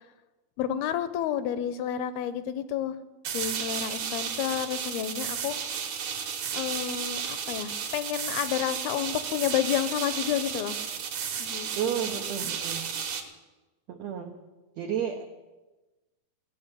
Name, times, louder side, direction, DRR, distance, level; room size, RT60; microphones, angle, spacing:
voice 1, 0.6-3.0 3.3-5.6 6.5-10.8 11.4-12.5, left 10 dB, 85° left, 12 dB, 2.5 m, -30 dB
sound 1, 3.2-13.2, right 7 dB, 60° right, 2.4 m, -33 dB
voice 2, 11.7-12.9 13.9-14.3 14.8-15.3, right 9 dB, 80° right, 4 dB, 1.5 m, -32 dB
17.0 x 7.3 x 9.7 m, 1.2 s
omnidirectional pair, 4.5 m